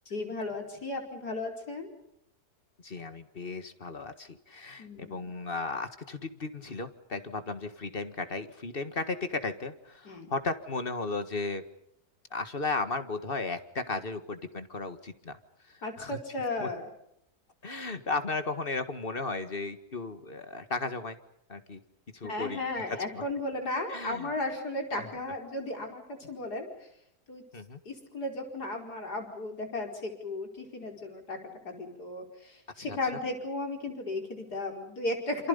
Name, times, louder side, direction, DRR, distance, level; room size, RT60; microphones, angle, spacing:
voice 1, 0.1-1.9 4.8-5.3 10.1-10.3 15.8-16.9 22.2-26.7 27.3-27.4 27.9-31.4 31.6-35.5, left 2 dB, 65° left, 3 dB, 5.3 m, -35 dB
voice 2, 2.8-11.6 12.3-15.4 15.7-16.2 16.6-16.7 17.6-21.2 21.5-21.8 22.1-22.6 22.9-23.2 23.9-24.3 25.0-25.1 27.5-27.8 32.8-33.0, left 3 dB, 35° left, 10 dB, 1.8 m, -35 dB
28.0 x 28.0 x 5.4 m, 0.76 s
omnidirectional pair, 1.8 m